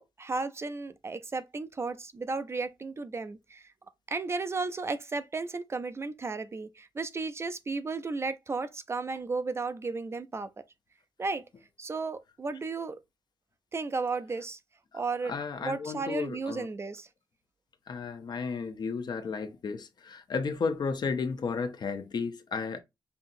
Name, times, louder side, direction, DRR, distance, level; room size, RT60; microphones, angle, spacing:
voice 1, 0.0-3.6 4.1-10.5 11.2-11.4 11.8-13.0 13.7-14.6 14.9-15.3 15.6-17.1, right 3 dB, 30° right, 0.4 m, -34 dB
voice 2, 15.2-16.7 17.9-22.8, left 5 dB, 60° left, 0.7 m, -33 dB
5.5 x 2.8 x 2.6 m
wide cardioid pair, 135°, 8 cm